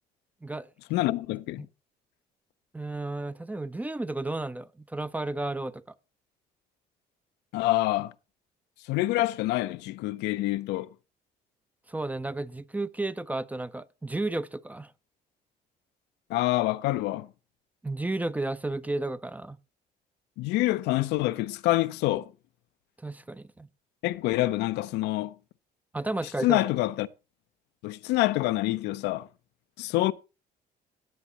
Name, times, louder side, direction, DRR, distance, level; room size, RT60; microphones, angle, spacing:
voice 1, 0.9-1.7 7.5-8.1 8.9-10.9 16.3-17.3 20.4-22.3 24.0-25.3 26.4-27.1 27.8-29.3 29.8-30.1, left 17 dB, 90° left, 0.6 m, -26 dB
voice 2, 2.7-5.8 11.9-14.9 17.8-19.6 23.0-23.7 25.9-26.6, right 2 dB, 10° right, 0.5 m, -32 dB
17.0 x 8.0 x 2.9 m
cardioid pair, 110°, 17 cm